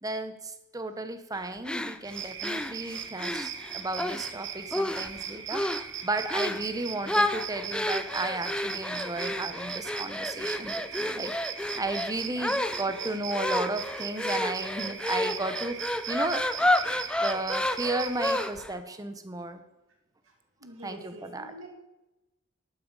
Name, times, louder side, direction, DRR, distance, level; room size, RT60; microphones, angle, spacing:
voice 1, 0.0-11.3 11.8-16.7 17.2-19.7 20.8-21.5, right 2 dB, 20° right, 9 dB, 1.0 m, -34 dB
sound 1, 1.6-4.3 4.7-5.2 5.5-5.9 6.3-6.7 7.1-18.7, left 1 dB, 5° left, 0.4 m, -30 dB
sound 2, 2.0-18.5, right 8 dB, 65° right, 1.1 m, -39 dB
voice 2, 20.6-21.7, right 1 dB, 85° right, 0 dB, 2.4 m, -47 dB
12.0 x 9.1 x 5.4 m, 0.97 s
head